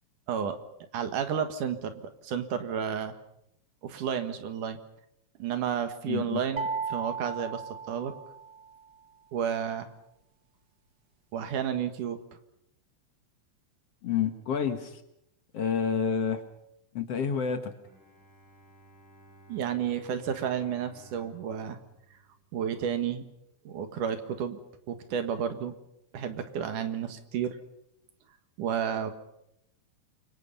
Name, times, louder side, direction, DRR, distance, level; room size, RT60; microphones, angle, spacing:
voice 1, 0.3-0.6 0.9-3.1 3.8-4.8 5.4-7.6 7.9-8.1 9.3-9.9 11.3-12.2 19.5-21.8 22.5-23.2 23.6-24.6 24.9-25.8 26.1-27.6 28.6-29.1, right 8 dB, 75° right, 8 dB, 3.1 m, -31 dB
voice 2, 6.1-6.4 14.0-15.0 15.5-16.4 16.9-17.7, left 7 dB, 55° left, 7 dB, 2.3 m, -29 dB
sound 1, 6.6-8.7, right 5 dB, 50° right, 1.2 m, -35 dB
Bowed string instrument, 17.8-23.1, right 2 dB, 15° right, 7.1 m, -57 dB
29.0 x 24.0 x 5.6 m, 0.78 s
omnidirectional pair, 3.7 m